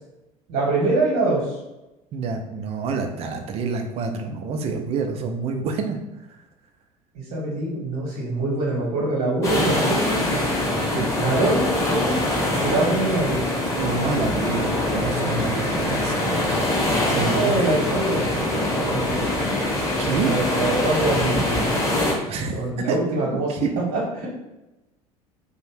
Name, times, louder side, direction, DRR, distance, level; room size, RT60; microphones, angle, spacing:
voice 1, 0.5-1.6 7.1-10.5 11.2-12.2 12.6-13.4 17.2-19.3 20.2-21.7 22.5-24.3, right 2 dB, 55° right, -5 dB, 0.9 m, -24 dB
voice 2, 2.1-6.0 10.9-11.1 13.7-16.5 17.1-17.5 20.0-20.3 22.3-22.6 22.9-23.0 23.6-23.7, right 4 dB, 35° right, 5 dB, 0.4 m, -27 dB
sound 1, 9.4-22.1, left 1 dB, 15° left, 0.9 m, -23 dB
2.5 x 2.0 x 3.1 m, 0.98 s
figure-of-eight pair, 65°, 19 cm